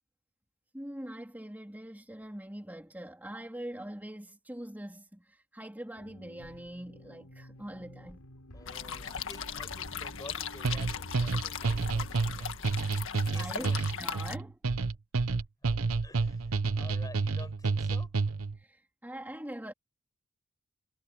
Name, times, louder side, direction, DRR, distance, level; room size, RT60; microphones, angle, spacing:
voice 1, 0.7-8.2 13.3-14.6 18.5-19.7, right 1 dB, 10° right, 3.3 m, -43 dB
sound 1, 6.0-12.2, left 1 dB, 90° left, 5.3 m, -50 dB
voice 2, 8.5-12.7 13.3-13.9 16.0-18.1, left 2 dB, 15° left, 7.4 m, -50 dB
sound 2, 8.7-14.4, left 7 dB, 60° left, 1.7 m, -38 dB
sound 3, 10.6-18.6, right 4 dB, 75° right, 0.9 m, -30 dB
head